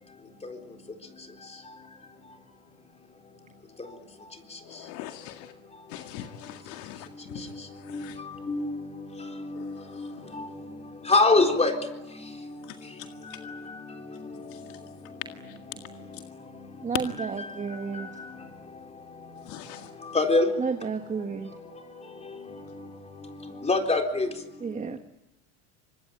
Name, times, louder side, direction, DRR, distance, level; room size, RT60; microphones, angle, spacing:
voice 1, 4.6-5.5 5.9-8.2 9.5-10.4 12.6-13.4 14.5-14.8 15.5-15.6 15.9-16.2 19.4-19.9, left 12 dB, 70° left, 2.0 m, -44 dB
voice 2, 11.1-11.7 20.1-20.5 23.7-24.3, left 3 dB, 15° left, 4.0 m, -21 dB
voice 3, 16.8-18.2 20.6-21.5 24.6-25.0, right 5 dB, 20° right, 1.5 m, -32 dB
25.5 x 21.5 x 8.8 m
supercardioid pair, 115°, 37 cm